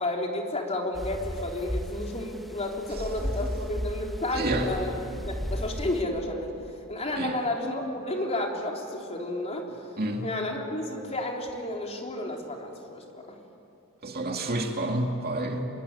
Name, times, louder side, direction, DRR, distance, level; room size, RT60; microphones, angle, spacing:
voice 1, 0.0-4.9 5.3-6.6 6.9-9.7 10.2-13.4, left 1 dB, 30° left, 1 dB, 3.5 m, -31 dB
sound 1, 0.9-6.0, equal, ahead, 1.1 m, -34 dB
voice 2, 4.3-4.7 7.2-7.4 10.0-10.3 14.0-15.7, right 1 dB, 45° right, 2 dB, 2.5 m, -29 dB
26.5 x 22.5 x 9.8 m, 2.7 s
head